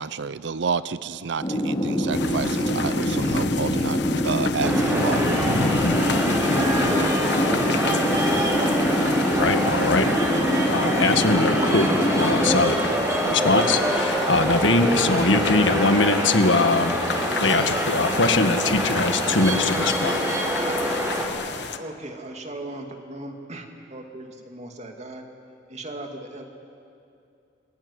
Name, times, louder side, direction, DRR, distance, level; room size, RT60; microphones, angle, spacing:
voice 1, 0.0-4.0 4.2-5.3, right 5 dB, 65° right, 16 dB, 0.5 m, -29 dB
sound 1, 1.4-12.6, equal, 25° left, 2.4 m, -25 dB
sound 2, 2.1-21.8, left 4 dB, 65° left, 1.0 m, -32 dB
sound 3, 4.6-21.3, equal, 15° right, 4.7 m, -25 dB
voice 2, 9.3-10.1 10.7-12.8 13.3-17.0 17.4-20.2, left 3 dB, 80° left, 7 dB, 1.7 m, -22 dB
voice 3, 21.8-25.2 25.7-26.4, right 2 dB, 35° right, 4 dB, 2.5 m, -38 dB
25.0 x 21.0 x 9.9 m, 2.6 s
head